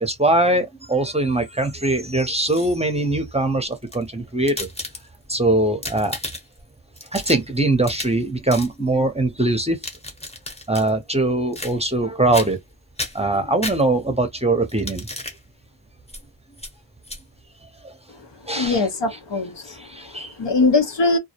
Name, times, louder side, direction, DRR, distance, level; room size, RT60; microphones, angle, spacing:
voice 1, 0.0-4.7 5.3-6.2 7.1-9.8 10.7-12.6 13.1-15.1 17.8-17.9 18.5-18.8 19.8-20.3, right 2 dB, 15° right, 0.6 m, -21 dB
sound 1, 2.3-3.0 3.7-5.3 5.7-6.6 7.0-8.2 8.5-8.7 9.6-10.9 11.5-12.0 12.3-12.7 13.0-14.2 14.7-15.4 16.1-16.2 16.6-16.7 17.0-17.2, left 1 dB, 15° left, 0.8 m, -33 dB
voice 2, 18.5-21.2, left 3 dB, 75° left, 0.7 m, -22 dB
2.3 x 2.0 x 2.7 m
wide cardioid pair, 50°, 43 cm